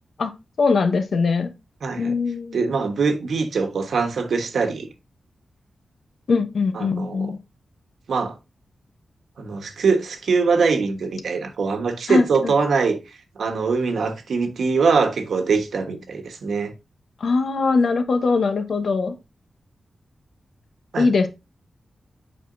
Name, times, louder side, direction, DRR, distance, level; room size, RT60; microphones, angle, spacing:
voice 1, 0.6-1.5 2.0-2.7 6.3-7.4 12.1-12.5 17.2-19.1 21.0-21.3, left 4 dB, 70° left, 0.9 m, -21 dB
voice 2, 1.8-2.1 2.5-4.9 6.7-7.3 8.1-8.3 9.4-13.0 13.4-16.7 20.9-21.1, right 4 dB, 85° right, 1.2 m, -22 dB
7.8 x 4.8 x 2.6 m
wide cardioid pair, 85°, 0 cm